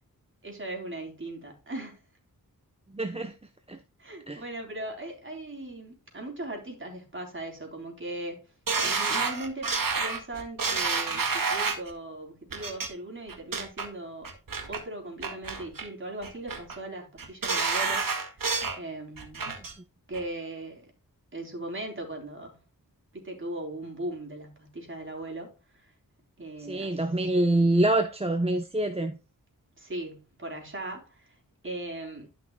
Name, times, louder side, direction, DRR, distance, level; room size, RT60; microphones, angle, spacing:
voice 1, 0.4-2.0 4.0-8.4 8.8-9.7 9.9-14.3 14.7-18.1 18.8-19.5 20.1-20.9 21.3-22.6 23.1-25.5 26.4-27.0 29.8-31.4 31.6-32.3, right 1 dB, 35° right, 3.6 m, -38 dB
voice 2, 2.9-3.3 3.7-3.8 4.3-4.4 26.7-29.2, right 1 dB, 15° right, 0.8 m, -25 dB
sound 1, 8.7-11.9 12.5-12.9 13.3-13.9 14.2-14.8 15.2-15.9 16.2-16.8 17.2-18.8 19.2-19.7 20.1-20.2, right 4 dB, 70° right, 1.9 m, -29 dB
12.0 x 6.0 x 2.2 m
wide cardioid pair, 80°, 35 cm